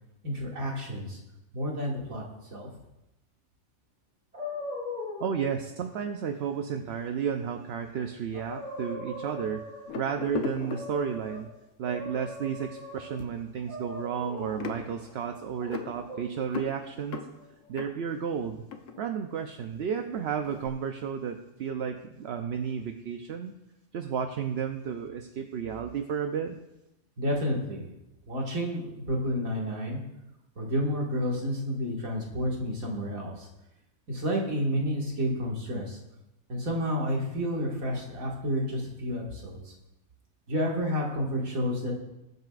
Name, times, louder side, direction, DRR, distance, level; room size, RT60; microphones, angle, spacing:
voice 1, 0.2-1.2 1.5-2.2 2.5-2.7 27.2-27.8 28.3-30.0 30.6-33.5 34.1-36.0 36.5-39.7 40.5-41.9, equal, 85° right, -2 dB, 2.4 m, -30 dB
sound 1, 4.3-5.5 7.9-8.0 8.3-10.0 10.6-11.4 11.8-13.2 13.7-14.7 15.6-16.2, left 2 dB, 25° right, 4.6 m, -39 dB
voice 2, 5.2-9.6 9.9-11.5 11.8-17.2 17.7-18.6 19.0-23.6 23.9-26.6, right 7 dB, 60° right, 6 dB, 0.8 m, -32 dB
sound 2, 9.9-11.5 12.1-12.3 12.6-19.8 20.0-20.7, left 5 dB, 70° left, 1.3 m, -39 dB
21.0 x 8.0 x 2.5 m, 0.92 s
omnidirectional pair, 1.4 m